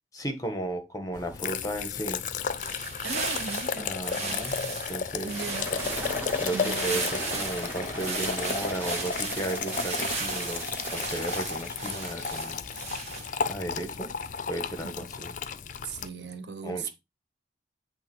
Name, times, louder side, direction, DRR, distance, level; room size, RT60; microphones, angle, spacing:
voice 1, 0.1-2.2 3.8-5.4 6.1-12.6 13.5-14.1 14.5-15.3 16.6-16.9, right 1 dB, 20° left, 1.5 m, -35 dB
sound 1, 1.1-16.1, left 6 dB, 45° left, 0.5 m, -34 dB
sound 2, 2.5-13.5, right 4 dB, 35° right, 1.9 m, -36 dB
voice 2, 3.0-4.4 5.2-5.6 6.5-7.0 14.8-15.1 15.8-16.9, right 5 dB, 65° right, 1.0 m, -38 dB
sound 3, 5.2-12.0, right 1 dB, 10° right, 2.0 m, -39 dB
8.5 x 3.4 x 6.2 m
head